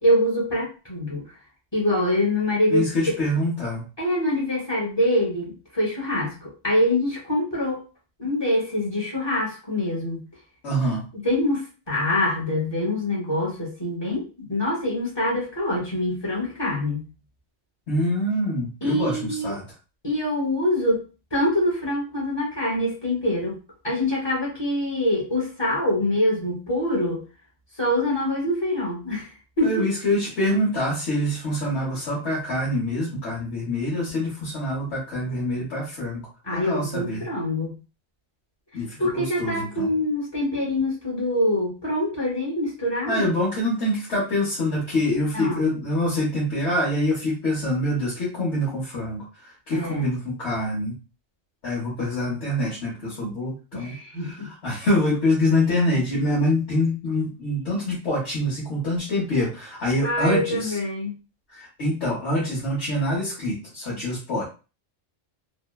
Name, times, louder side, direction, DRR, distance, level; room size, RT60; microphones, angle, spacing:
voice 1, 0.0-1.2 1.7-2.9 4.0-7.8 8.2-10.2 11.1-17.1 18.8-19.5 20.0-21.0 21.3-23.6 23.8-27.2 27.8-29.3 29.6-29.9 36.4-37.7 39.0-43.4 45.3-45.7 49.7-50.1 53.7-54.5 60.0-61.1, left 1 dB, 25° left, -4 dB, 0.9 m, -25 dB
voice 2, 2.7-3.8 10.6-11.1 17.9-19.6 29.6-36.2 36.5-37.3 38.7-39.9 43.1-51.0 51.6-60.7 61.5-64.5, left 1 dB, 65° left, -6 dB, 1.2 m, -25 dB
3.1 x 2.0 x 2.2 m, 0.33 s
omnidirectional pair, 1.2 m